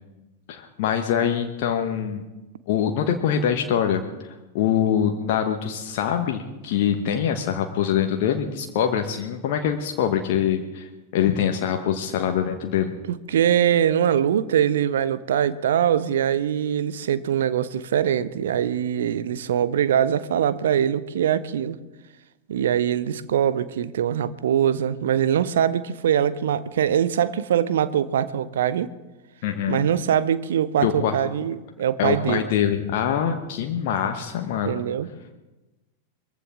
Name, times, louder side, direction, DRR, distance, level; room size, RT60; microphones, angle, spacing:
voice 1, 0.5-2.2 2.7-4.0 4.5-12.9 29.4-29.9 30.8-31.1 32.0-34.8, left 9 dB, 50° left, 4 dB, 1.2 m, -24 dB
voice 2, 13.1-21.8 22.5-28.9 29.7-32.5 34.6-35.1, right 9 dB, 60° right, 15 dB, 0.7 m, -22 dB
22.0 x 15.0 x 3.7 m, 1.1 s
figure-of-eight pair, 90°, 0 cm